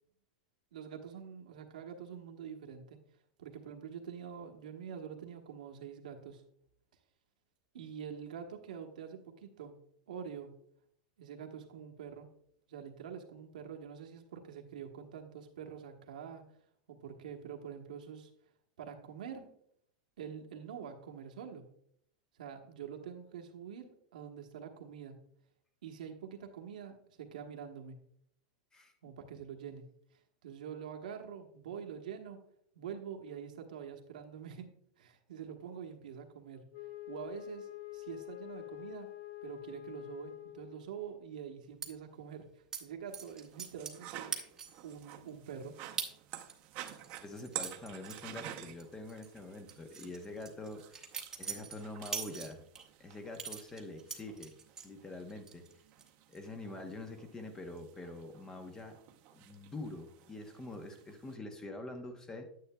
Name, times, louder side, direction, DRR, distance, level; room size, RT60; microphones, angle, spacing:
voice 1, 0.7-3.0 3.4-6.4 7.7-9.7 10.1-10.5 11.2-12.3 12.7-16.4 16.9-18.3 18.8-19.5 20.2-21.6 22.4-25.2 25.8-28.0 29.0-29.8 30.4-32.4 32.7-34.7 35.0-36.6 37.1-39.1 39.4-42.4 42.8-44.4 44.8-45.7, right 7 dB, 90° right, 3 dB, 1.2 m, -46 dB
Wind instrument woodwind instrument, 36.7-40.9, left 17 dB, 65° left, 1.5 m, -46 dB
sound 1, 41.8-41.9 42.7-42.8 43.1-44.0 44.3-44.8 45.3-45.4 46.0-46.1 46.5-48.8 49.1-49.3 49.7-52.8 53.3-54.9 55.3-55.7 56.0-56.4, right 6 dB, 15° right, 1.0 m, -42 dB
sound 2, 43.1-61.4, right 12 dB, 45° right, 0.8 m, -51 dB
voice 2, 47.2-51.0 51.4-52.6 53.0-54.6 54.8-55.7 56.3-59.0 59.3-62.5, left 2 dB, 15° left, 6 dB, 0.9 m, -45 dB
9.5 x 8.3 x 2.3 m, 0.68 s
supercardioid pair, 135°, 4 cm